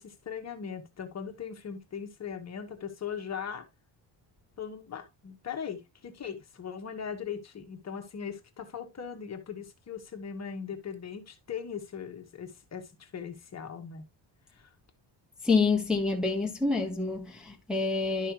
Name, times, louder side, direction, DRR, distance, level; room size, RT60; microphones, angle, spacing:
voice 1, 0.0-3.7 4.6-14.1 14.5-14.7, left 7 dB, 35° left, 1.3 m, -39 dB
voice 2, 15.4-18.3, left 4 dB, ahead, 1.1 m, -27 dB
11.5 x 5.5 x 2.9 m
cardioid pair, 175°, 46 cm